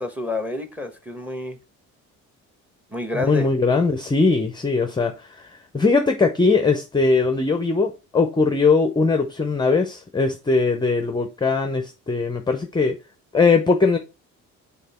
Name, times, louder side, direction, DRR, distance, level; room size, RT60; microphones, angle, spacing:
voice 1, 0.0-1.6 2.9-3.5, left 2 dB, 5° right, 1.1 m, -29 dB
voice 2, 3.1-13.0 13.3-14.0, left 4 dB, 15° left, 0.6 m, -20 dB
6.5 x 3.7 x 4.2 m
cardioid pair, 115°, 32 cm